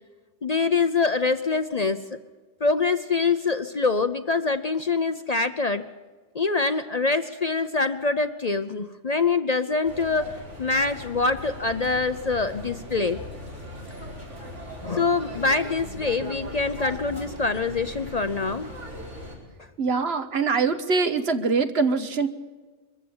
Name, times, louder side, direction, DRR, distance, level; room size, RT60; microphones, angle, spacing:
voice 1, 0.4-2.2 2.6-5.8 6.3-13.2 14.8-18.7, left 4 dB, 40° left, 10 dB, 0.7 m, -25 dB
sound 1, 9.8-19.4, left 1 dB, 80° right, 5.5 m, -39 dB
voice 2, 19.8-22.3, right 4 dB, 60° right, 9 dB, 1.4 m, -23 dB
23.0 x 15.0 x 8.8 m, 1.4 s
omnidirectional pair, 1.2 m